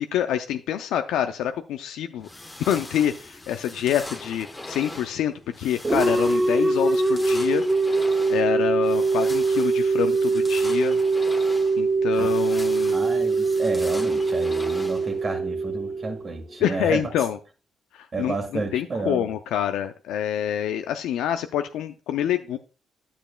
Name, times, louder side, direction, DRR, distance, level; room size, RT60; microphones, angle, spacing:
voice 1, 0.0-2.3 2.6-7.6 8.3-11.0 11.8-13.0 16.6-17.4 17.9-22.6, left 10 dB, 85° left, 0.4 m, -26 dB
sound 1, 2.2-15.4, left 2 dB, 15° left, 1.0 m, -40 dB
sound 2, 5.8-16.5, right 3 dB, 25° right, 0.6 m, -23 dB
voice 2, 12.9-17.0 18.1-19.3, right 3 dB, 40° right, 1.6 m, -31 dB
10.0 x 6.9 x 2.2 m
cardioid pair, 90°, 0 cm